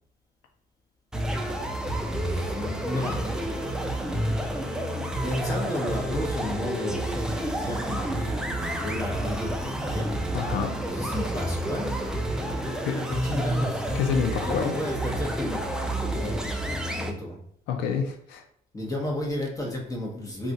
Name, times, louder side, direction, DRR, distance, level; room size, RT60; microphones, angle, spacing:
sound 1, 1.1-17.1, right 1 dB, 5° right, 0.4 m, -29 dB
voice 1, 2.2-3.6 5.2-10.2 10.8-13.8 14.3-15.6 16.1-17.4 17.8-18.0 18.7-20.5, left 1 dB, 20° left, -1 dB, 1.0 m, -33 dB
voice 2, 10.3-10.8 12.8-13.0 13.9-14.7 17.7-18.4, left 7 dB, 80° left, 4 dB, 0.6 m, -27 dB
2.4 x 2.4 x 4.0 m, 0.68 s
cardioid pair, 110°, 17 cm